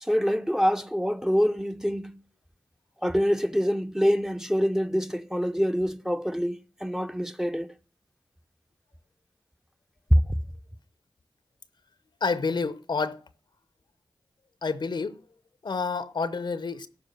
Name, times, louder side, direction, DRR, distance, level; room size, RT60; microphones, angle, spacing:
voice 1, 0.0-2.2 3.0-7.7 10.1-10.2, equal, 5° right, 0.7 m, -25 dB
voice 2, 12.2-13.2 14.6-15.2 15.6-16.9, left 4 dB, 70° left, 0.8 m, -29 dB
12.0 x 4.6 x 7.5 m
cardioid pair, 45°, 8 cm